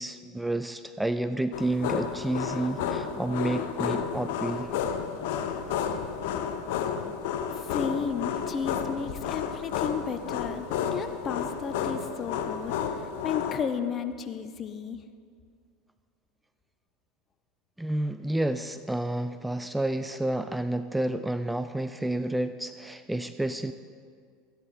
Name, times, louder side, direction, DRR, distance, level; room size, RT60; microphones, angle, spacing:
voice 1, 0.0-4.7 17.8-23.7, right 1 dB, 5° right, 11 dB, 0.4 m, -30 dB
sound 1, 1.5-13.6, left 7 dB, 70° left, 0.8 m, -31 dB
voice 2, 7.5-15.0, left 6 dB, 35° left, 10 dB, 0.8 m, -33 dB
14.5 x 10.5 x 4.2 m, 2.1 s
hypercardioid pair, 90°, 0 cm